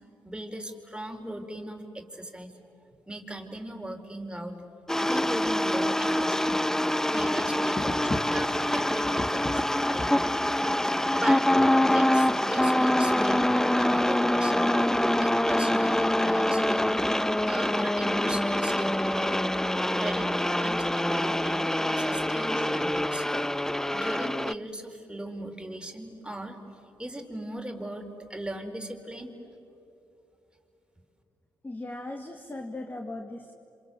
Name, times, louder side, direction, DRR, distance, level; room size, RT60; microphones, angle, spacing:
voice 1, 0.2-2.6 3.1-4.5 5.0-6.6 7.1-8.0 8.3-9.4 9.9-10.2 10.8-11.5 11.8-16.8 17.5-19.5 20.0-23.3 23.9-26.6 27.0-29.3, right 1 dB, 10° right, 4 dB, 4.0 m, -38 dB
sound 1, 4.9-24.5, left 1 dB, 5° left, 0.5 m, -25 dB
voice 2, 7.8-8.7 9.0-9.6 10.0-10.1 31.6-33.5, left 2 dB, 25° left, 3 dB, 2.3 m, -36 dB
27.5 x 26.5 x 7.7 m, 2.9 s
supercardioid pair, 55°, 8 cm